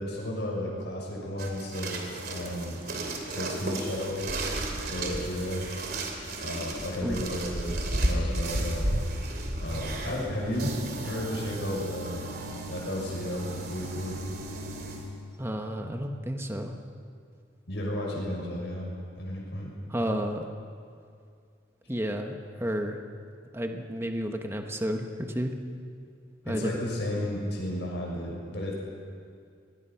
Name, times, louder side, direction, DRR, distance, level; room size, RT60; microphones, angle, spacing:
voice 1, 0.0-2.9 3.3-4.3 4.9-5.7 6.4-8.9 9.6-12.3 12.7-14.2 17.7-19.7 26.5-28.7, left 1 dB, 65° left, -2 dB, 6.6 m, -33 dB
sound 1, 1.4-15.1, right 1 dB, 55° right, 2.9 m, -33 dB
voice 2, 15.4-16.7 19.9-20.5 21.9-23.0 23.5-25.5 26.4-26.8 27.1-27.2, equal, 15° right, 4 dB, 1.2 m, -31 dB
25.0 x 20.5 x 5.9 m, 2.3 s
head